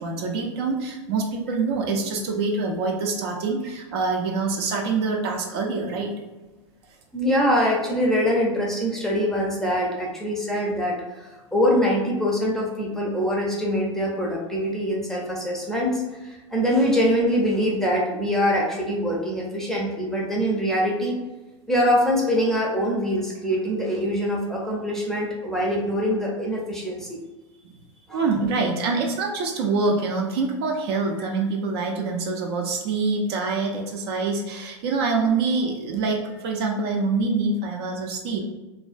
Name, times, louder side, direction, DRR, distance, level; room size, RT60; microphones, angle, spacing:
voice 1, 0.0-6.1 27.6-27.8 28.1-38.4, right 4 dB, 55° right, 1 dB, 0.5 m, -25 dB
voice 2, 7.1-21.2 21.7-27.2 28.1-28.2, equal, 5° left, -3 dB, 0.5 m, -24 dB
2.4 x 2.3 x 2.4 m, 1.1 s
hypercardioid pair, 100°, 16 cm